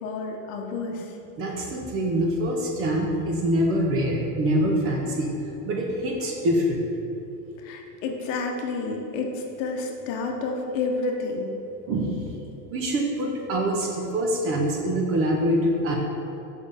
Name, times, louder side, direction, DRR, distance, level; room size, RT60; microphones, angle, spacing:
voice 1, 0.0-1.2 7.6-11.5, left 3 dB, 55° left, 2 dB, 0.9 m, -30 dB
voice 2, 1.4-5.4 5.6-6.9 11.9-12.3 12.7-16.0, right 1 dB, 30° right, 0 dB, 0.6 m, -25 dB
6.2 x 5.5 x 3.4 m, 3.0 s
supercardioid pair, 145°, 47 cm